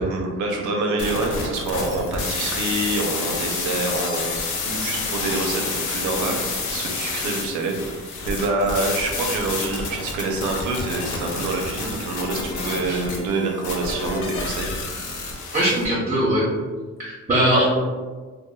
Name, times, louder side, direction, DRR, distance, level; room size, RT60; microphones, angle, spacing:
voice 1, 0.0-6.4 6.7-14.7, right 2 dB, 75° right, 1 dB, 0.6 m, -26 dB
sound 1, 1.0-15.8, left 3 dB, 80° left, 0.6 m, -29 dB
voice 2, 15.5-16.4 17.0-17.7, right 1 dB, 30° right, -8 dB, 0.9 m, -20 dB
2.9 x 2.2 x 2.2 m, 1.4 s
cardioid pair, 90°, 30 cm